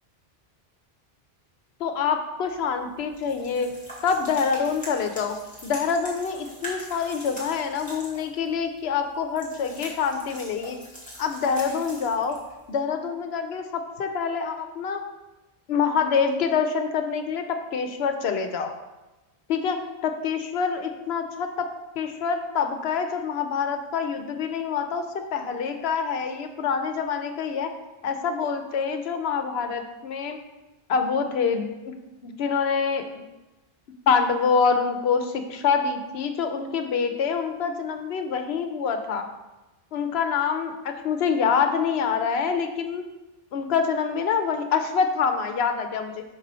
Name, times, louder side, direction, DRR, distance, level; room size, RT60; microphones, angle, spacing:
voice 1, 1.8-3.7 4.0-5.4 5.6-10.8 11.2-12.4 12.7-15.0 15.7-18.8 19.5-19.8 20.0-21.7 22.0-25.0 25.3-27.7 28.0-30.4 30.9-31.7 32.2-33.0 34.1-39.3 39.9-43.0 43.5-46.2, left 6 dB, 80° left, 6 dB, 0.9 m, -26 dB
sound 1, 2.4-12.8, equal, 5° left, 1.9 m, -43 dB
6.0 x 4.0 x 4.2 m, 1.0 s
omnidirectional pair, 1.1 m